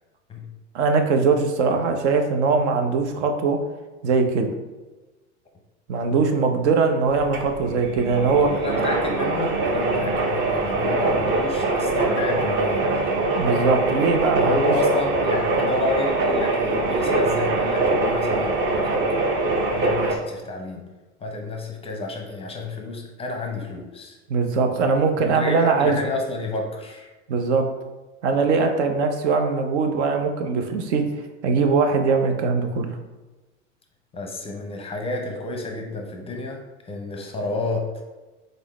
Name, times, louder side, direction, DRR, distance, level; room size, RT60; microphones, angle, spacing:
voice 1, 0.7-3.6 4.0-4.5 5.9-8.5 13.3-14.7 24.3-26.0 27.3-27.7 28.2-31.0 31.4-32.9, right 4 dB, 70° right, 5 dB, 0.7 m, -21 dB
sound 1, 7.0-20.2, right 2 dB, 30° right, 0.7 m, -23 dB
voice 2, 8.4-13.2 14.4-19.3 19.7-20.9 21.2-24.2 25.2-27.1 34.1-37.9, left 2 dB, 15° left, 2 dB, 0.6 m, -30 dB
3.9 x 3.7 x 3.0 m, 1.2 s
hypercardioid pair, 95°, 36 cm